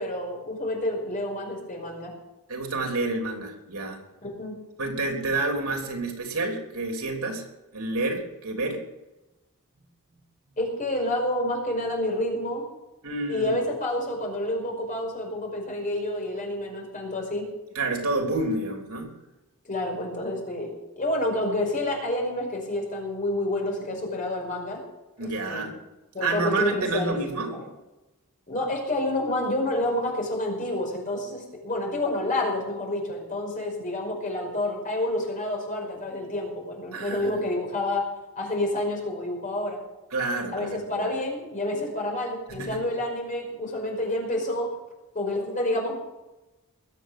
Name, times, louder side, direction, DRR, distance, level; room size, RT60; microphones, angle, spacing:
voice 1, 0.0-2.1 4.2-4.6 10.6-12.7 13.3-17.4 19.7-20.7 21.0-24.8 25.2-25.7 26.1-27.2 27.5-27.6 28.5-38.0 38.4-39.8 40.5-44.7 45.1-45.9, left 1 dB, 35° left, 0 dB, 5.3 m, -29 dB
voice 2, 2.5-4.0 4.8-7.5 7.7-8.8 13.0-13.6 17.7-19.1 25.2-25.8 26.2-27.5 36.9-37.4 40.1-41.1 42.5-42.8, right 2 dB, 85° right, 2 dB, 3.4 m, -29 dB
21.0 x 7.8 x 7.7 m, 1.0 s
head